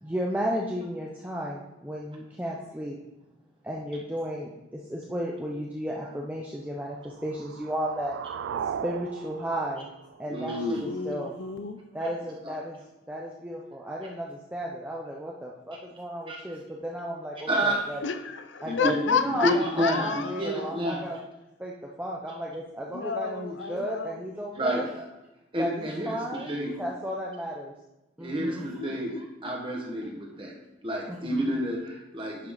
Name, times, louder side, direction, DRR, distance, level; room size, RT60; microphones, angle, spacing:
voice 1, 0.0-3.0 3.6-8.2 8.8-9.9 10.2-11.4 11.9-12.8 13.1-18.0 18.6-21.2 21.6-24.9 25.6-26.5 26.8-27.7 28.2-28.7 31.1-31.4, equal, 10° right, -3 dB, 0.6 m, -34 dB
sound 1, 6.9-10.9, right 7 dB, 80° right, 0.3 m, -38 dB
voice 2, 10.3-11.0 12.4-12.5 16.3-16.4 17.5-17.8 18.6-19.0 19.2-21.2 24.5-25.1 25.5-26.8 28.2-30.5 30.8-32.5, equal, 25° right, -1 dB, 1.5 m, -29 dB
voice 3, 10.8-11.8 12.7-12.8 18.0-20.8 22.9-24.3 28.8-29.8, left 5 dB, 75° left, 9 dB, 0.6 m, -32 dB
10.5 x 5.5 x 3.9 m, 0.95 s
head